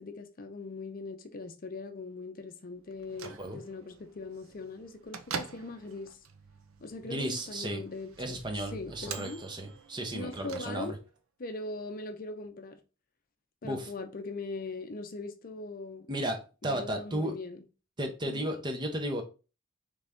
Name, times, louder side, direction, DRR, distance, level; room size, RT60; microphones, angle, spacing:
voice 1, 0.0-6.2 6.8-9.4 10.1-11.0 11.4-12.8 13.6-16.1 16.6-17.6 18.2-18.4, left 3 dB, 45° left, 0.6 m, -41 dB
Bell / Microwave oven, 2.9-11.2, right 6 dB, 85° right, 0.6 m, -45 dB
voice 2, 7.0-7.8 8.2-10.9 13.6-13.9 16.1-17.3 18.0-19.2, right 1 dB, 20° right, 0.7 m, -34 dB
3.9 x 3.4 x 3.5 m
head